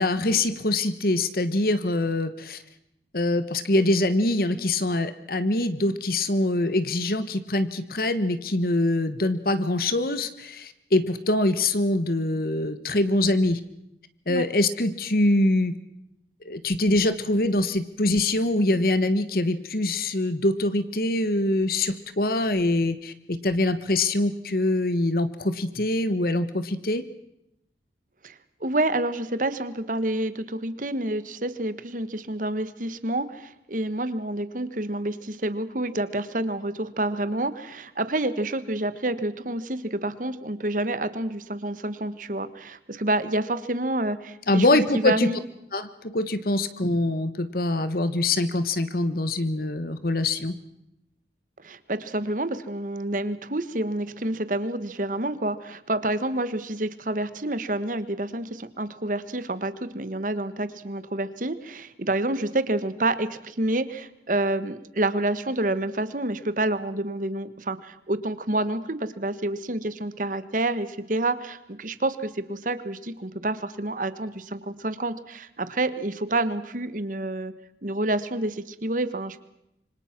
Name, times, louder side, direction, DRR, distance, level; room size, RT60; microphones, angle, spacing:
voice 1, 0.0-2.6 3.1-13.6 14.3-15.8 16.4-27.0 44.5-45.3 45.7-50.6, left 2 dB, 55° left, 12 dB, 1.3 m, -24 dB
voice 2, 28.2-45.4 51.6-77.5 77.8-79.4, right 1 dB, 50° right, 13 dB, 1.4 m, -28 dB
26.5 x 25.0 x 6.0 m, 0.82 s
head